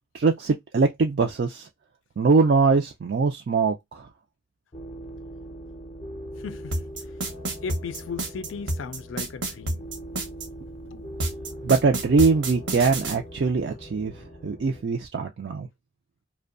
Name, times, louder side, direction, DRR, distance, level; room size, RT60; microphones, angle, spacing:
voice 1, 0.1-1.7 2.2-4.1 11.6-15.7, right 4 dB, 55° right, 0.4 m, -22 dB
sound 1, 4.7-14.8, equal, 35° left, 0.6 m, -41 dB
voice 2, 6.4-6.8 7.6-9.9 10.9-11.2, left 5 dB, 80° left, 0.4 m, -37 dB
sound 2, 6.7-10.5 11.2-13.2, right 2 dB, 75° right, 0.9 m, -29 dB
2.6 x 2.1 x 2.4 m
head